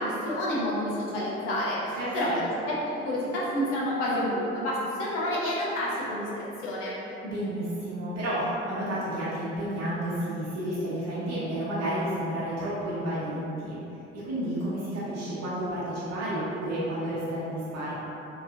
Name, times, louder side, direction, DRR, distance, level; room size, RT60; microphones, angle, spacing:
voice 1, 0.0-6.9, left 1 dB, 75° left, -6 dB, 0.8 m, -29 dB
voice 2, 2.0-2.4 7.2-13.8 14.1-18.0, right 1 dB, 50° right, -10 dB, 1.0 m, -31 dB
3.8 x 2.9 x 2.6 m, 2.9 s
figure-of-eight pair, 40°, 35 cm